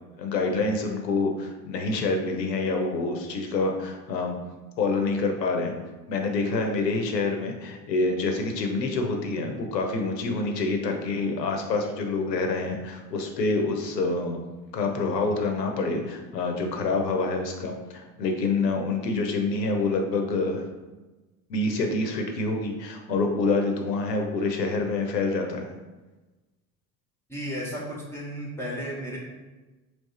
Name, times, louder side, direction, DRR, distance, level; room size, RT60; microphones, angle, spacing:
voice 1, 0.2-4.4 4.8-5.7 6.1-14.4 14.7-20.7 21.5-25.7, left 3 dB, 75° left, 3 dB, 0.7 m, -27 dB
voice 2, 27.3-29.2, equal, 5° left, -5 dB, 0.8 m, -34 dB
3.3 x 3.0 x 4.1 m, 1.2 s
figure-of-eight pair, 60°, 50 cm